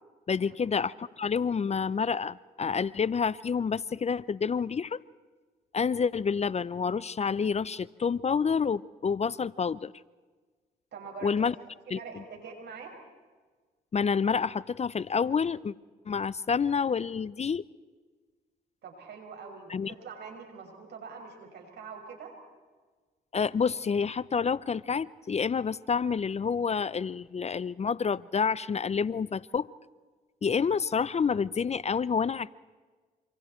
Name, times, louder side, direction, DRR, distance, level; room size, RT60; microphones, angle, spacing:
voice 1, 0.3-5.0 5.7-9.9 11.2-11.5 11.9-12.2 13.9-15.7 16.1-17.6 19.7-19.9 23.3-29.7 30.4-32.5, left 6 dB, 35° left, 20 dB, 0.6 m, -28 dB
voice 2, 10.9-11.5 11.9-12.9 18.8-22.3, right 5 dB, 65° right, 2 dB, 6.3 m, -44 dB
27.0 x 26.0 x 4.5 m, 1.4 s
supercardioid pair, 55°, 19 cm